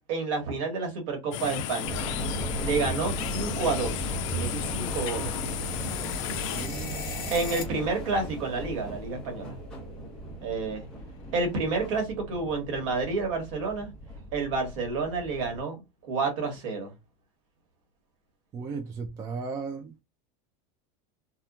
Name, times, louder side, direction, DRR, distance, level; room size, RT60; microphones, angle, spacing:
voice 1, 0.1-2.0 2.6-5.3 7.3-9.5 10.4-10.8 11.3-13.9 14.3-16.9, right 4 dB, 60° right, 1.3 m, -30 dB
sound 1, 1.3-6.7, left 12 dB, 60° left, 0.4 m, -34 dB
sound 2, 1.8-15.6, right 1 dB, 5° left, 0.9 m, -37 dB
sound 3, 4.7-7.9 8.1-11.9, left 6 dB, 45° left, 1.1 m, -43 dB
voice 2, 6.5-7.2 18.5-20.0, right 4 dB, 15° right, 0.3 m, -36 dB
2.8 x 2.3 x 2.3 m
supercardioid pair, 165°, 18 cm